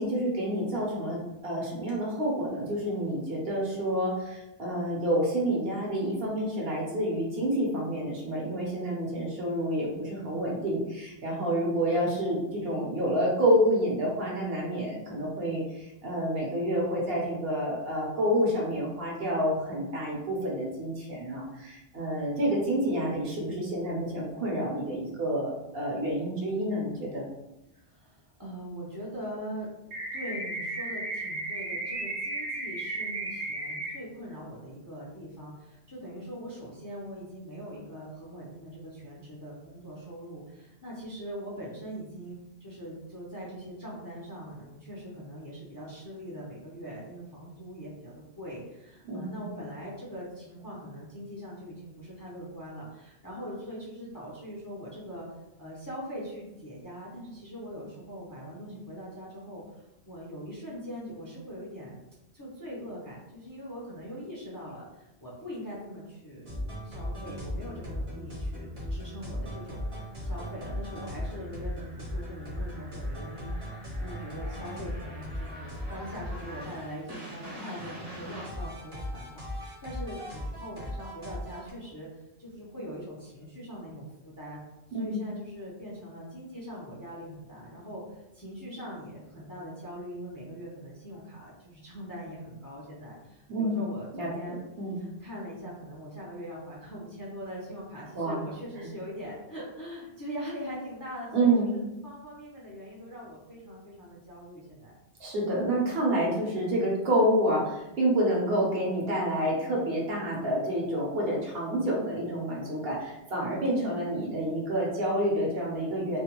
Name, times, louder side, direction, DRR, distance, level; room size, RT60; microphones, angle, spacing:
voice 1, 0.0-27.3 49.1-49.4 84.9-85.2 93.5-93.8 94.1-95.0 98.1-98.4 101.3-101.8 105.2-116.2, right 1 dB, 65° right, -3 dB, 1.0 m, -28 dB
voice 2, 27.7-42.3 42.6-55.3 55.6-62.0 62.3-84.6 84.9-94.6 95.0-105.0, equal, 30° left, -6 dB, 0.4 m, -42 dB
sound 1, 29.9-33.9, right 2 dB, 85° right, 1.2 m, -34 dB
sound 2, 66.5-81.7, left 1 dB, 35° right, 0.7 m, -37 dB
2.5 x 2.2 x 2.9 m, 0.92 s
omnidirectional pair, 1.1 m